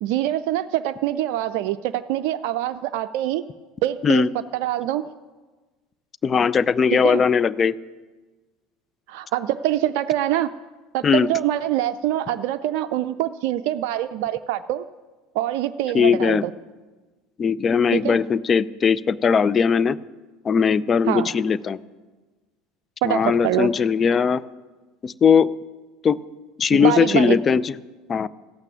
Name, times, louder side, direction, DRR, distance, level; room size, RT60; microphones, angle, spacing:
voice 1, 0.0-3.4 3.8-4.2 4.5-5.0 6.9-7.2 9.1-10.5 10.9-14.8 15.3-16.5 17.9-18.2 21.1-21.3 23.0-23.7 26.7-27.4, right 13 dB, 55° right, 9 dB, 0.4 m, -24 dB
voice 2, 6.2-7.8 11.0-11.3 15.9-16.4 17.4-20.0 20.4-21.8 23.0-24.4 25.0-25.5 26.0-26.2 26.6-27.7 28.1-28.3, left 6 dB, 30° left, 19 dB, 0.5 m, -19 dB
14.5 x 8.9 x 9.6 m, 1.3 s
figure-of-eight pair, 70°, 0 cm